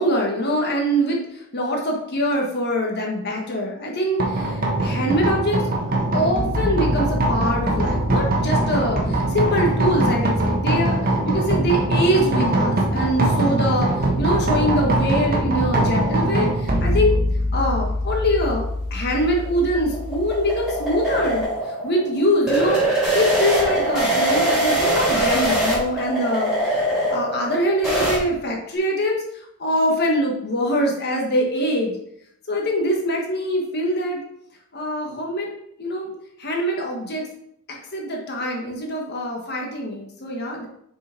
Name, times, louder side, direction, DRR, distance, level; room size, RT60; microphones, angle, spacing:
voice 1, 0.0-5.6 6.1-17.1 17.5-26.8 27.1-32.0 32.5-34.2 34.7-35.5 35.8-36.1 36.4-37.3 37.7-40.7, equal, 50° left, 0 dB, 1.4 m, -24 dB
sound 1, 4.2-21.4, right 1 dB, 40° right, 1.3 m, -22 dB
sound 2, 19.2-28.2, right 1 dB, 5° right, 3.2 m, -22 dB
7.0 x 4.9 x 4.4 m, 0.73 s
head